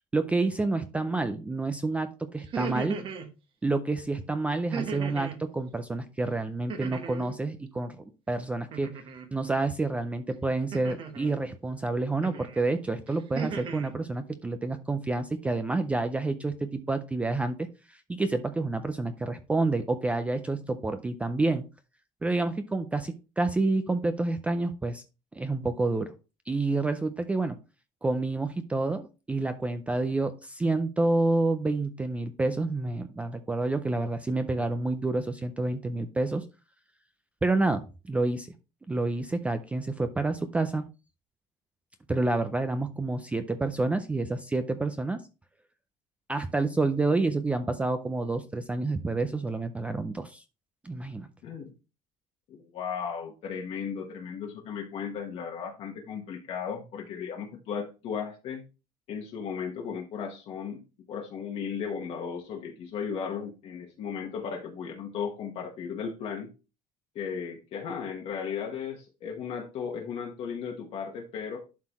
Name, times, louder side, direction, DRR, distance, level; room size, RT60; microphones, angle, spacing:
voice 1, 0.1-3.0 3.6-8.9 9.3-21.6 22.2-25.0 25.3-26.1 26.5-27.6 28.0-36.4 37.4-38.5 38.9-40.9 42.1-45.2 46.3-50.4 50.8-51.3, right 2 dB, 10° right, 9 dB, 0.4 m, -28 dB
sound 1, 2.4-3.3 4.7-5.4 6.7-7.4 8.7-9.3 10.7-11.4 12.2-12.6 13.1-13.9, right 6 dB, 40° right, 1.0 m, -36 dB
voice 2, 51.4-51.7 52.5-58.6 59.1-66.5 67.1-71.6, left 6 dB, 45° left, 1 dB, 1.2 m, -35 dB
11.5 x 3.9 x 3.0 m, 0.31 s
cardioid pair, 165°, 14 cm